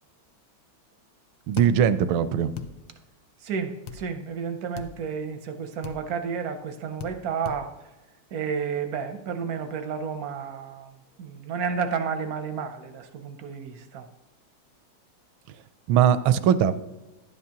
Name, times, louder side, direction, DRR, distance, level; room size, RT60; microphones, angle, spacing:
voice 1, 1.5-2.5 15.9-16.7, right 9 dB, 85° right, 13 dB, 1.4 m, -20 dB
sound 1, 1.6-1.7 2.6-2.7 3.9-4.0 4.8-4.9 5.8-6.0 7.0-7.2 7.4-7.6, left 8 dB, 75° left, 1.4 m, -36 dB
voice 2, 3.4-7.7 8.3-14.1, right 6 dB, 65° right, 7 dB, 0.9 m, -31 dB
11.0 x 9.5 x 2.9 m, 1.1 s
omnidirectional pair, 2.2 m